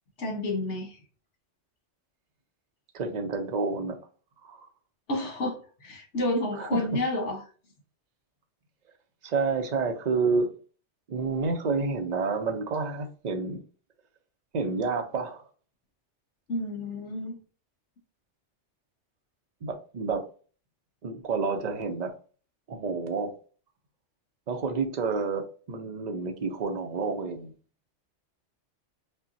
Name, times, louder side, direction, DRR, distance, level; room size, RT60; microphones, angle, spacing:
voice 1, 0.2-1.0 5.1-7.4 16.5-17.3, left 1 dB, 80° left, 1.5 m, -30 dB
voice 2, 2.9-4.0 4.4-4.7 6.5-6.9 9.2-10.5 11.1-13.6 14.5-15.4 19.6-20.2 21.0-22.1 22.7-23.3 24.5-27.5, right 4 dB, 45° right, 0.7 m, -29 dB
5.4 x 2.2 x 2.6 m
omnidirectional pair, 1.2 m